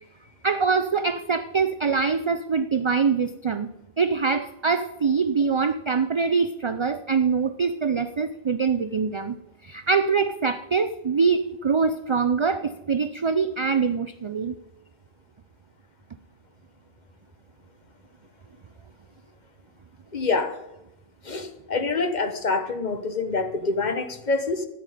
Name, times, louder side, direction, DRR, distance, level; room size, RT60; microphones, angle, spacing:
voice 1, 0.4-3.7 4.0-9.4 9.6-14.5, right 5 dB, 40° right, 10 dB, 0.4 m, -24 dB
voice 2, 20.1-20.6 21.2-24.7, left 3 dB, 45° left, 8 dB, 1.2 m, -26 dB
14.0 x 9.3 x 5.0 m, 0.93 s
omnidirectional pair, 1.1 m